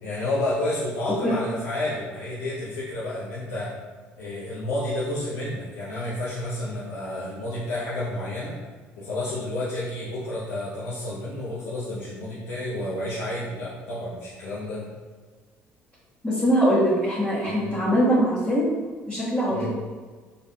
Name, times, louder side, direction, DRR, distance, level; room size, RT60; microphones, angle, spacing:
voice 1, 0.0-3.7 4.2-8.5 9.0-14.8 17.6-17.7 19.5-19.6, left 1 dB, 85° left, -8 dB, 0.8 m, -30 dB
voice 2, 16.2-18.7 19.1-19.7, equal, 10° left, -10 dB, 1.4 m, -22 dB
4.1 x 3.3 x 2.7 m, 1.4 s
supercardioid pair, 70°, 6 cm